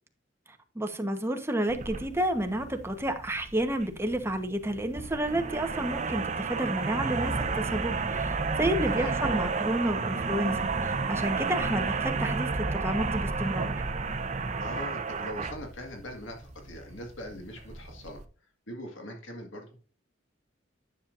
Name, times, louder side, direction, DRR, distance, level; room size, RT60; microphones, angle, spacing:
voice 1, 0.7-13.7, right 1 dB, 15° right, 1.1 m, -30 dB
sound 1, 1.7-18.2, right 4 dB, 40° right, 0.8 m, -32 dB
voice 2, 14.6-18.2 18.7-19.6, left 1 dB, 85° left, 1.8 m, -41 dB
10.0 x 7.1 x 2.6 m
head